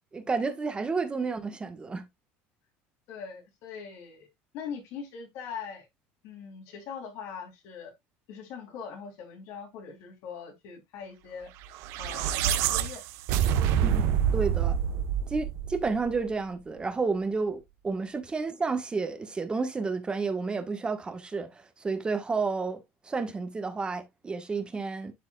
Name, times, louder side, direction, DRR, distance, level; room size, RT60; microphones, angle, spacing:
voice 1, 0.1-2.1 13.8-14.0 14.3-14.8 15.3-25.1, right 4 dB, 20° right, 1.4 m, -31 dB
voice 2, 3.1-4.3 4.5-5.9 6.2-7.9 8.3-11.5 12.0-13.0 13.4-13.7, left 6 dB, 65° left, 3.5 m, -41 dB
sound 1, 11.7-16.2, right 9 dB, 70° right, 1.2 m, -27 dB
12.0 x 4.6 x 2.4 m
cardioid pair, 125°, 5 cm